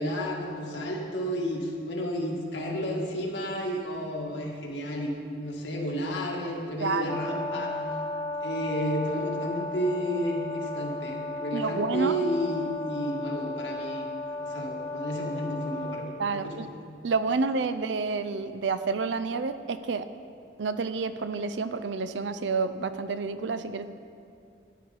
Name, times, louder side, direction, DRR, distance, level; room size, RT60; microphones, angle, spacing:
voice 1, 0.0-7.8 8.4-14.1 14.4-16.6, equal, 85° left, -1 dB, 1.8 m, -32 dB
voice 2, 6.8-7.2 11.5-12.2 16.2-16.7 17.0-20.1 20.6-23.9, right 4 dB, 80° right, 12 dB, 0.5 m, -29 dB
Brass instrument, 7.1-16.1, left 2 dB, 15° left, 0.8 m, -34 dB
12.0 x 10.0 x 4.1 m, 2.4 s
head